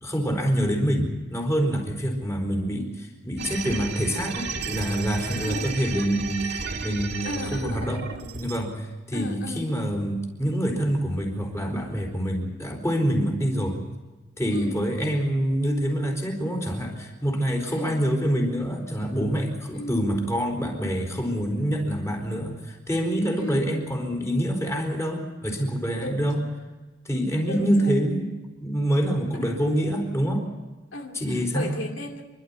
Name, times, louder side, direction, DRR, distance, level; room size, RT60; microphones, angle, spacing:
voice 1, 0.0-8.0 8.4-13.8 14.4-26.4 27.0-28.3 28.6-30.5 31.1-31.7, equal, 15° left, 2 dB, 4.5 m, -26 dB
sound 1, 3.4-8.6, right 4 dB, 60° right, 2.3 m, -33 dB
voice 2, 5.4-5.8 7.2-8.4 9.1-9.7 14.5-14.9 17.7-18.0 19.7-20.0 23.4-23.7 26.0-26.5 27.4-27.9 29.3-29.6 30.9-32.2, left 1 dB, 75° left, 2 dB, 2.5 m, -36 dB
27.5 x 12.0 x 9.9 m, 1.2 s
head